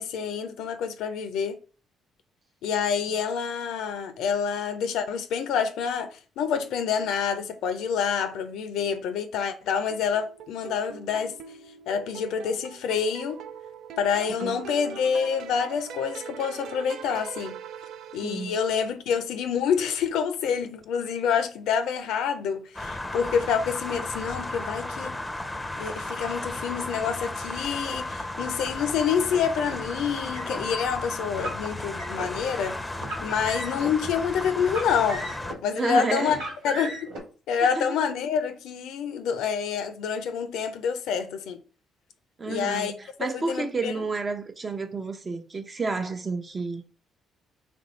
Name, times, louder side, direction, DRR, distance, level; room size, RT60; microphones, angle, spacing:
voice 1, 0.0-1.6 2.6-11.3 11.9-13.4 14.0-17.6 18.1-25.1 25.8-32.8 33.2-35.3 35.6-36.4 36.6-37.1 37.5-41.6 42.5-42.9 43.3-43.9, left 7 dB, 70° left, 0.5 m, -27 dB
sound 1, 9.9-18.8, right 8 dB, 65° right, 0.3 m, -42 dB
voice 2, 18.2-18.6 35.7-36.5 37.6-37.9 42.4-46.8, right 4 dB, 35° right, 0.7 m, -30 dB
sound 2, 22.7-35.5, left 2 dB, 10° left, 0.6 m, -34 dB
Car, 29.6-30.6 31.3-32.3 32.9-33.9 34.6-35.7 36.3-37.2, equal, 85° right, 1.5 m, -36 dB
3.0 x 2.6 x 4.2 m
hypercardioid pair, 50°, 0 cm